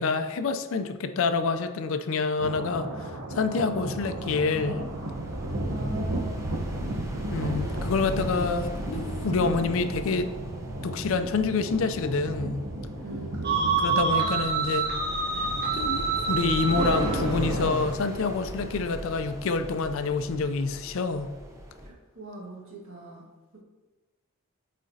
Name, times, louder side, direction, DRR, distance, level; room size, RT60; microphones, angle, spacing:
voice 1, 0.0-4.8 7.3-10.3 10.8-12.6 13.8-14.9 15.3-15.5 15.7-21.3, left 4 dB, 65° left, 10 dB, 0.4 m, -27 dB
sound 1, 2.4-17.9, right 1 dB, 90° right, 0.9 m, -34 dB
voice 2, 3.7-4.0 5.7-6.6 13.0-14.2 21.8-23.6, right 1 dB, 65° right, -3 dB, 1.5 m, -42 dB
sound 2, 4.1-21.9, equal, 15° right, 0.6 m, -39 dB
sound 3, 13.4-17.2, right 5 dB, 45° right, 1.2 m, -27 dB
8.4 x 4.2 x 2.7 m, 1.2 s
head